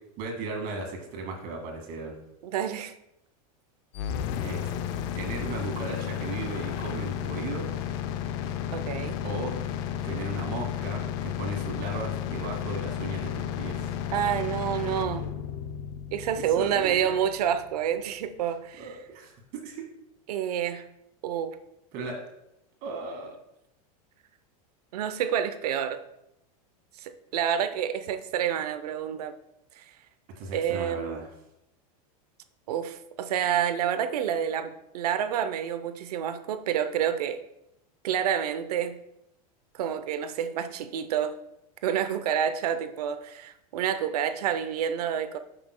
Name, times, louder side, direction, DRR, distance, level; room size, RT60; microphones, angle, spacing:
voice 1, 0.2-2.2 4.4-4.7 5.1-7.7 9.2-9.5 10.0-13.8 16.5-17.2 18.8-19.8 21.9-22.2 22.8-23.3 30.4-31.3, right 3 dB, 50° right, 2 dB, 2.0 m, -36 dB
voice 2, 2.4-2.9 8.7-9.2 14.1-15.3 16.1-18.9 20.3-20.8 21.2-21.6 24.9-26.0 27.0-29.3 29.8-29.9 30.5-31.2 32.7-37.4 38.0-39.0 39.7-41.4 41.8-45.4, right 9 dB, 85° right, 10 dB, 0.7 m, -28 dB
sound 1, 3.9-17.9, left 10 dB, 50° left, 0.5 m, -33 dB
12.5 x 5.9 x 2.2 m, 0.84 s
supercardioid pair, 140°, 19 cm